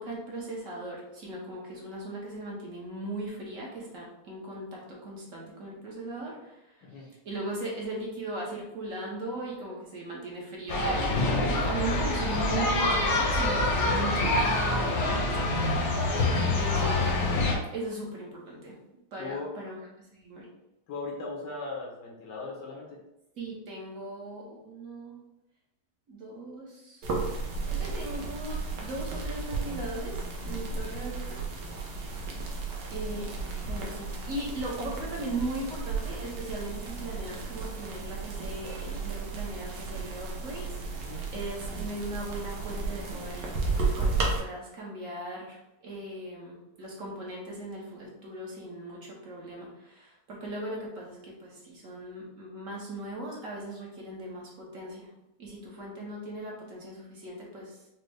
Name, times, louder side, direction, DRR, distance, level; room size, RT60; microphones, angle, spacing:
voice 1, 0.0-15.5 16.6-17.3 17.7-18.8 19.1-20.5 23.4-25.2 26.1-27.1 27.7-31.4 32.9-33.3 33.7-43.5 44.0-55.1 55.4-57.8, right 1 dB, 55° right, -3 dB, 1.1 m, -38 dB
sound 1, 10.7-17.5, left 2 dB, 75° left, 1.4 m, -26 dB
voice 2, 19.2-19.5 20.9-23.0 27.1-28.0 41.1-41.3, left 3 dB, 90° left, -2 dB, 1.7 m, -39 dB
sound 2, 27.0-44.4, right 4 dB, 75° right, 1.4 m, -34 dB
5.2 x 2.1 x 3.3 m, 0.90 s
omnidirectional pair, 1.8 m